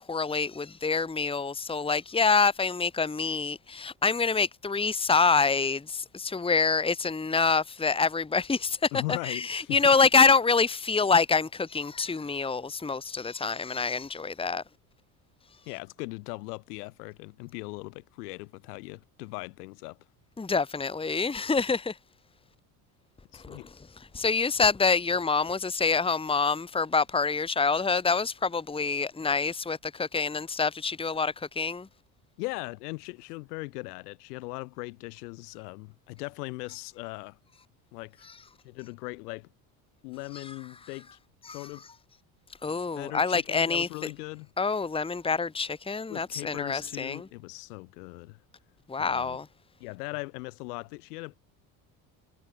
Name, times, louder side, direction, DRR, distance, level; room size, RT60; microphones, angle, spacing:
voice 1, 0.0-8.9 9.2-14.6 20.4-21.9 23.4-23.6 24.1-31.9 41.5-41.6 42.6-43.9 44.6-47.2 48.9-49.5, left 4 dB, 10° left, 1.4 m, -26 dB
voice 2, 8.9-9.8 15.7-20.0 23.3-23.7 32.4-37.4 37.9-38.3 38.6-39.5 40.0-41.2 41.5-41.9 42.9-44.5 46.1-48.4 49.0-49.4 49.8-51.4, left 25 dB, 85° left, 3.7 m, -39 dB
supercardioid pair, 90°, 45 cm